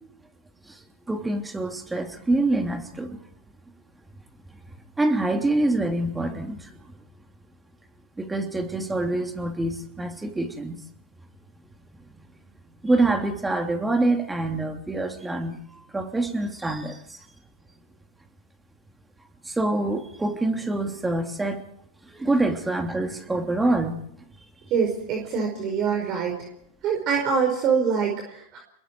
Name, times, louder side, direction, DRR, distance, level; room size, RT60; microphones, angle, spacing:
voice 1, 1.1-3.2 5.0-6.9 8.2-10.8 12.8-17.2 19.4-21.6 22.0-24.0, right 2 dB, 10° right, 4 dB, 3.1 m, -26 dB
voice 2, 24.7-26.5 26.8-28.6, right 6 dB, 45° right, 2 dB, 4.8 m, -24 dB
27.5 x 22.0 x 4.7 m, 0.72 s
hypercardioid pair, 100°, 0 cm